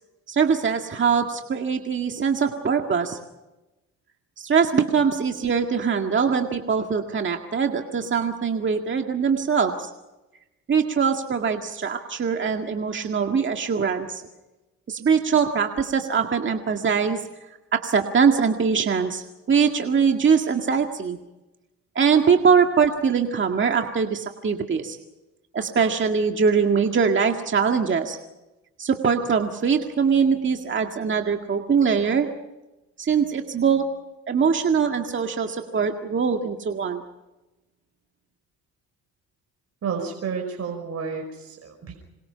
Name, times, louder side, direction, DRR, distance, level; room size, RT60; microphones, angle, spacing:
voice 1, 0.3-3.2 4.4-9.9 10.7-14.2 14.9-17.2 17.7-21.2 22.0-25.0 25.5-28.2 28.8-32.3 33.0-33.9 34.3-37.0, right 6 dB, 40° right, 4 dB, 2.0 m, -22 dB
voice 2, 39.8-42.0, right 6 dB, 55° right, 3 dB, 5.2 m, -31 dB
27.0 x 22.5 x 5.7 m, 1.0 s
cardioid pair, 90°, 30 cm